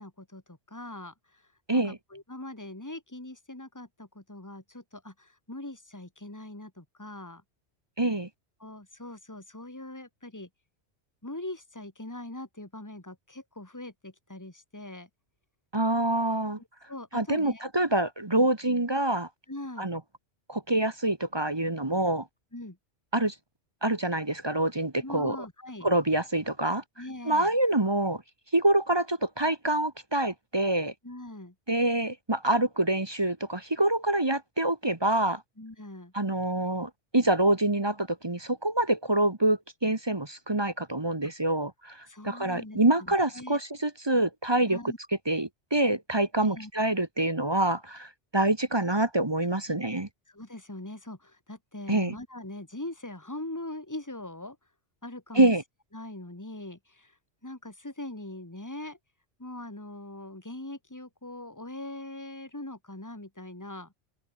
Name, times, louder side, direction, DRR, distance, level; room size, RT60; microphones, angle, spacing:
voice 1, 0.0-7.4 8.6-10.5 11.2-15.1 16.6-17.6 19.5-19.9 22.5-22.8 25.0-25.9 27.0-27.5 31.0-31.5 35.6-36.1 41.2-41.3 42.1-43.6 44.7-45.0 46.4-46.7 49.7-49.8 50.3-54.6 55.0-55.5 55.9-57.2 57.4-59.0 59.4-63.9, left 1 dB, 15° left, 2.8 m, -41 dB
voice 2, 8.0-8.3 15.7-16.6 17.1-19.3 19.8-20.0 20.5-22.2 23.1-23.3 23.8-25.4 25.8-26.8 27.3-28.2 28.5-30.9 31.7-35.4 36.1-44.8 45.3-50.1 51.9-52.1 55.3-55.6, right 1 dB, 25° right, 1.3 m, -26 dB
open air
omnidirectional pair, 1.2 m